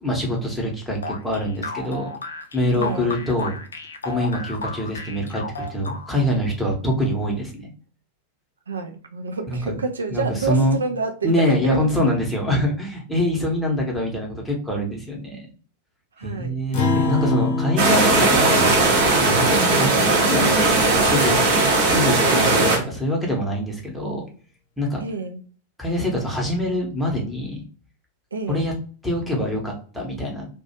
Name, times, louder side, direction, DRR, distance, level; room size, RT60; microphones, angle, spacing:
voice 1, 0.0-2.1 2.5-3.5 4.0-7.7 9.5-9.8 10.1-10.8 11.2-15.5 16.2-18.7 19.2-21.4 21.8-24.2 24.8-25.0 25.8-27.6 28.5-28.7 29.0-30.5, equal, ahead, 0.8 m, -24 dB
sound 1, 1.0-6.3, left 3 dB, 70° left, 0.3 m, -33 dB
voice 2, 2.7-3.1 8.7-11.9 16.2-16.5 19.5-19.9 25.0-25.4 28.3-28.6, right 4 dB, 75° right, 0.4 m, -29 dB
Acoustic guitar, 16.7-21.4, left 3 dB, 45° left, 0.7 m, -27 dB
sound 2, 17.8-22.8, right 3 dB, 45° right, 0.7 m, -18 dB
2.4 x 2.1 x 2.7 m
figure-of-eight pair, 90°, 0 cm